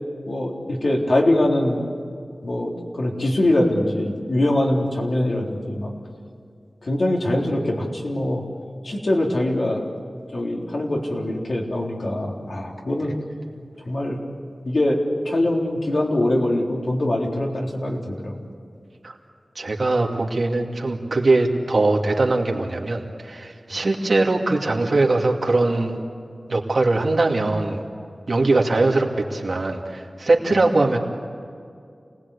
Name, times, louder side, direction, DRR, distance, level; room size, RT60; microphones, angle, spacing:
voice 1, 0.3-1.8 2.4-5.9 6.8-8.4 8.8-9.8 10.3-13.1 13.9-14.2 14.6-18.4, left 1 dB, 60° left, -1 dB, 3.6 m, -23 dB
voice 2, 19.6-26.0 26.5-27.8 28.3-31.0, right 2 dB, 65° right, 0 dB, 2.6 m, -21 dB
28.5 x 19.5 x 8.4 m, 2.3 s
wide cardioid pair, 85°, 0 cm